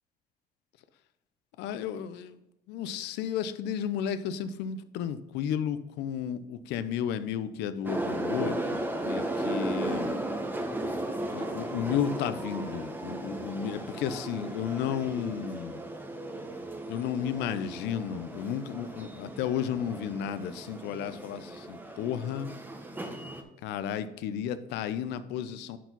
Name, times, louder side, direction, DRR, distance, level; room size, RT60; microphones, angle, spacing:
voice 1, 1.6-10.2 11.3-15.8 16.9-22.5 23.6-25.8, left 9 dB, 85° left, 13 dB, 0.6 m, -33 dB
sound 1, 7.8-23.4, right 1 dB, 10° right, 1.0 m, -35 dB
10.0 x 4.6 x 4.0 m, 0.94 s
cardioid pair, 110°, 17 cm